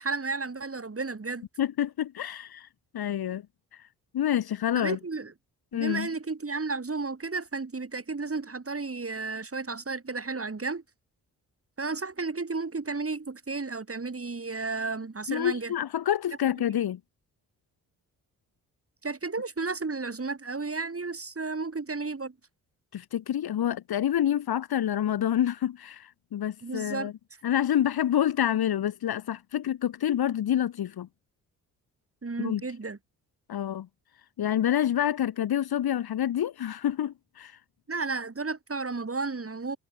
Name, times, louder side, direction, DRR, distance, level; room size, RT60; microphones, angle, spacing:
voice 1, 0.0-1.5 4.7-5.3 5.7-10.8 11.8-15.7 19.0-22.3 26.6-27.1 32.2-33.0 37.9-39.8, right 3 dB, 30° right, 7.3 m, -33 dB
voice 2, 1.6-2.7 2.9-3.4 3.7-3.9 4.1-5.0 5.7-6.1 15.3-17.0 22.9-27.1 27.4-31.1 32.4-32.6 33.5-33.9 34.4-37.6, left 10 dB, 60° left, 1.6 m, -27 dB
hypercardioid pair, 45°, 42 cm